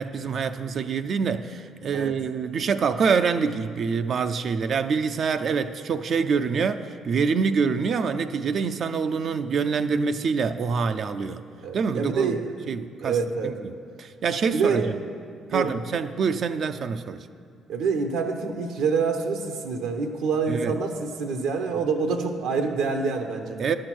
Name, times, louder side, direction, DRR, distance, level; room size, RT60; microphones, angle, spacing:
voice 1, 0.0-11.4 11.7-12.4 12.7-13.7 14.0-15.0 15.5-17.3 20.5-20.8 23.6-23.7, right 5 dB, 55° right, 8 dB, 0.4 m, -26 dB
voice 2, 11.6-12.4 13.0-13.5 14.5-14.9 15.5-15.7 17.7-23.6, right 5 dB, 85° right, 4 dB, 0.9 m, -26 dB
10.5 x 6.5 x 6.1 m, 2.2 s
supercardioid pair, 70°, 0 cm